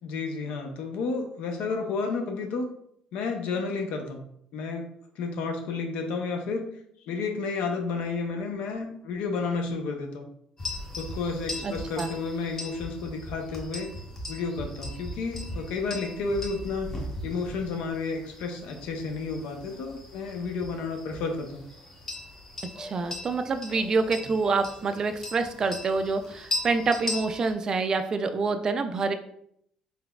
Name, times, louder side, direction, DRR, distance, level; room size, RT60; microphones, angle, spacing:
voice 1, 0.0-2.7 3.1-4.2 4.5-4.9 5.2-6.7 7.0-10.3 11.0-13.9 14.3-16.9 17.2-21.7, left 4 dB, 75° left, 4 dB, 0.6 m, -31 dB
sound 1, 10.6-27.5, left 1 dB, 20° left, 0.8 m, -39 dB
voice 2, 11.6-12.1 22.8-29.1, right 4 dB, 30° right, 8 dB, 0.3 m, -27 dB
4.1 x 3.9 x 2.2 m, 0.70 s
cardioid pair, 145°, 2 cm